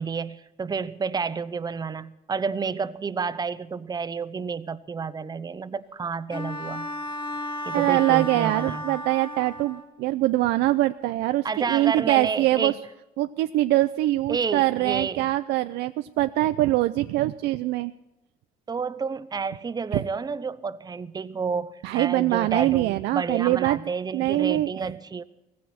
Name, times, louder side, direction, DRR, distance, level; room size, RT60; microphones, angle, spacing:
voice 1, 0.0-6.9 7.6-9.0 11.4-12.8 14.3-15.3 18.7-25.2, right 5 dB, 25° right, 14 dB, 0.8 m, -30 dB
Bowed string instrument, 6.3-10.0, left 1 dB, 30° left, 1.7 m, -34 dB
voice 2, 7.7-12.7 13.2-17.9 19.9-20.0 21.8-23.8 24.1-24.7, right 16 dB, 85° right, 10 dB, 0.5 m, -23 dB
17.5 x 15.5 x 4.3 m, 0.95 s
cardioid pair, 110°, 17 cm